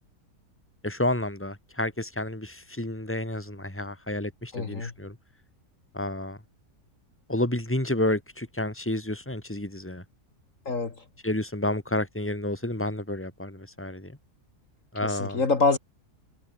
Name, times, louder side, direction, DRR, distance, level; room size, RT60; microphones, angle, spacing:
voice 1, 0.8-5.1 5.9-6.4 7.3-10.0 11.2-14.1 14.9-15.4, left 1 dB, 10° left, 3.3 m, -30 dB
voice 2, 4.5-4.9 10.7-10.9 15.0-15.8, left 3 dB, 55° left, 2.5 m, -25 dB
omnidirectional pair, 1.6 m